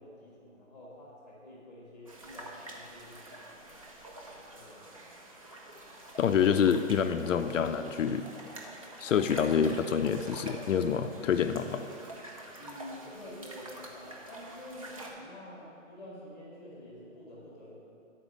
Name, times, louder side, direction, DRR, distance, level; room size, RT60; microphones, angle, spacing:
voice 1, 0.0-3.6 4.5-4.8 11.6-11.9 12.5-17.8, left 1 dB, ahead, -5 dB, 1.1 m, -48 dB
sound 1, 2.1-15.1, right 1 dB, 30° right, 0.6 m, -46 dB
voice 2, 6.2-8.3 9.0-11.6, left 7 dB, 75° left, 8 dB, 0.5 m, -27 dB
9.1 x 4.4 x 6.1 m, 2.5 s
hypercardioid pair, 170°, 39 cm